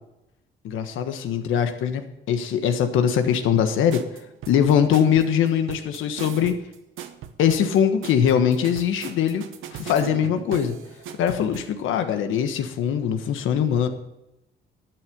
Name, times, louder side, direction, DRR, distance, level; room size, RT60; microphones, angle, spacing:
voice 1, 0.6-4.1 4.5-6.6 7.4-9.5 9.7-10.8 11.2-13.9, left 8 dB, 85° left, 8 dB, 1.4 m, -22 dB
sound 1, 3.9-11.7, right 9 dB, 85° right, 1.0 m, -38 dB
12.5 x 8.0 x 6.7 m, 0.88 s
cardioid pair, 90°, 20 cm